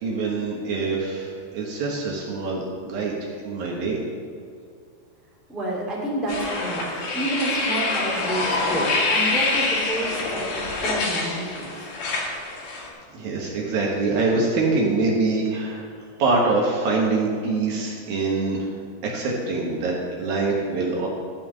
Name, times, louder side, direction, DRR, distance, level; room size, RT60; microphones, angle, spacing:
voice 1, 0.0-4.0 13.1-15.8 16.2-18.7 19.0-21.1, right 3 dB, 65° right, -3 dB, 2.9 m, -24 dB
voice 2, 5.5-11.9, right 1 dB, ahead, -5 dB, 1.6 m, -29 dB
sound 1, 6.3-12.9, left 3 dB, 55° left, 3.2 m, -26 dB
14.0 x 5.7 x 7.5 m, 2.2 s
omnidirectional pair, 5.1 m